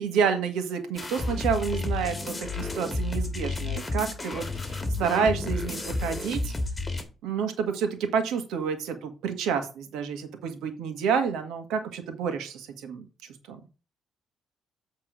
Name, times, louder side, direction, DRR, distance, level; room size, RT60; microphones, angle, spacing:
voice 1, 0.0-6.5 7.2-13.1 13.5-13.6, right 6 dB, 90° right, 7 dB, 1.6 m, -29 dB
sound 1, 1.0-7.0, left 2 dB, 20° left, 1.9 m, -31 dB
8.1 x 3.7 x 6.2 m, 0.33 s
cardioid pair, 90°, 0 cm